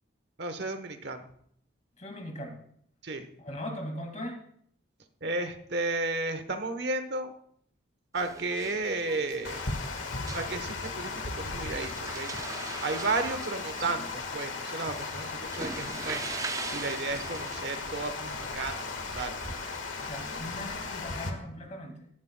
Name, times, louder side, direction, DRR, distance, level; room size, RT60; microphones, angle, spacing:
voice 1, 0.4-1.3 3.0-3.3 5.2-7.3 8.1-9.7 10.3-12.3 12.8-16.2 16.7-19.3, right 3 dB, 60° right, 8 dB, 1.1 m, -33 dB
voice 2, 2.0-2.6 3.4-4.4 20.0-22.1, left 1 dB, 35° left, 4 dB, 2.1 m, -39 dB
sound 1, 8.1-20.1, right 4 dB, 15° right, 0.3 m, -42 dB
Water, 9.4-21.3, left 4 dB, 80° left, 1.6 m, -36 dB
16.5 x 12.5 x 2.3 m, 0.65 s
head